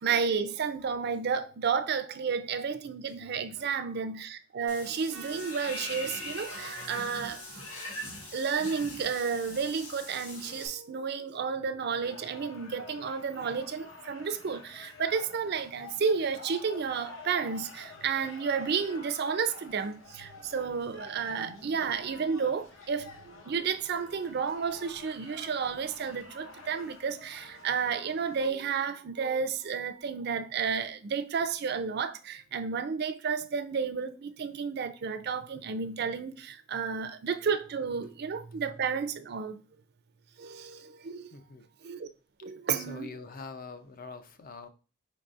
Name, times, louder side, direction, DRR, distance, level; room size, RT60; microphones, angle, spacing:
voice 1, 0.0-7.6 8.3-39.6 40.4-41.3 41.8-42.1 42.4-43.1, right 6 dB, 50° right, 0.4 m, -32 dB
Water / Bathtub (filling or washing), 4.7-10.7, left 2 dB, 85° left, 1.7 m, -42 dB
Trumpet, 5.1-9.5, right 4 dB, 85° right, 0.7 m, -50 dB
sound 1, 12.0-28.5, left 4 dB, 70° left, 0.9 m, -49 dB
voice 2, 41.3-41.7 42.4-42.5 42.7-44.7, left 4 dB, 40° left, 0.5 m, -44 dB
4.8 x 3.9 x 2.4 m
head